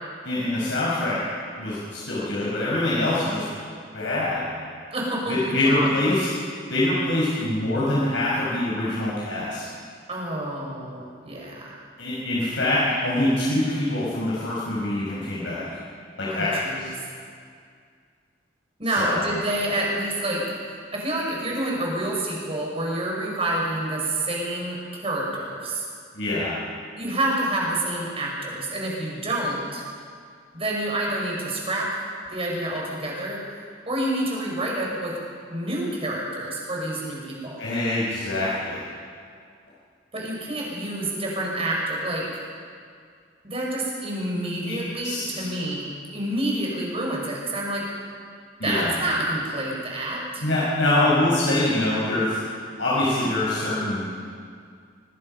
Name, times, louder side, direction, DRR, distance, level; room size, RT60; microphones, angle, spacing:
voice 1, 0.2-1.2 1.6-3.4 3.9-4.4 5.3-6.3 6.7-9.6 12.0-15.7 16.2-16.9 19.0-19.2 26.1-26.5 37.6-38.8 44.7-44.8 45.0-45.2 48.6-48.9 50.4-52.4 52.8-54.1, left 1 dB, 75° left, -7 dB, 5.5 m, -24 dB
voice 2, 4.9-5.5 10.1-11.8 16.3-16.9 18.8-20.4 20.9-25.8 27.0-29.8 30.5-31.9 32.3-33.4 33.9-35.2 35.5-37.6 40.1-42.3 43.4-47.8 48.6-50.4, right 1 dB, 35° right, -2 dB, 5.9 m, -28 dB
24.5 x 19.5 x 5.6 m, 2.2 s
head